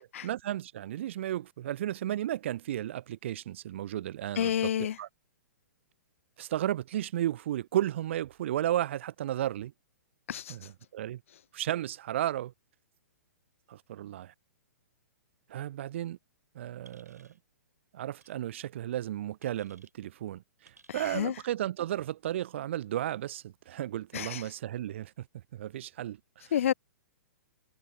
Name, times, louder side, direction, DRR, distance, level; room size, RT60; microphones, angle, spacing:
voice 1, 0.2-4.7 5.0-5.1 6.4-9.7 10.5-11.2 11.5-12.5 13.7-14.3 15.5-16.2 16.5-17.3 17.9-25.3 25.5-26.5, right 12 dB, 45° right, 0.4 m, -34 dB
voice 2, 4.4-5.0 10.3-10.6 20.9-21.3 24.1-24.4 26.5-26.7, left 10 dB, 50° left, 0.6 m, -30 dB
sound 1, 16.8-17.4 18.2-18.4 19.4-19.9 20.6-21.2, right 3 dB, 80° right, 4.6 m, -60 dB
figure-of-eight pair, 115°, 9 cm